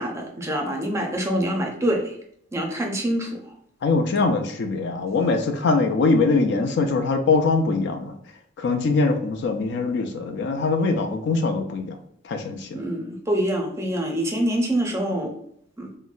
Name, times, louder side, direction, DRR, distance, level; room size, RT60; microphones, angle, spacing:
voice 1, 0.0-2.1 2.5-3.5 12.7-15.3 15.8-15.9, right 1 dB, 15° right, 1 dB, 0.5 m, -25 dB
voice 2, 3.8-8.2 8.6-12.0 12.2-12.8, left 3 dB, 60° left, 5 dB, 0.4 m, -22 dB
3.8 x 2.1 x 2.4 m, 0.69 s
head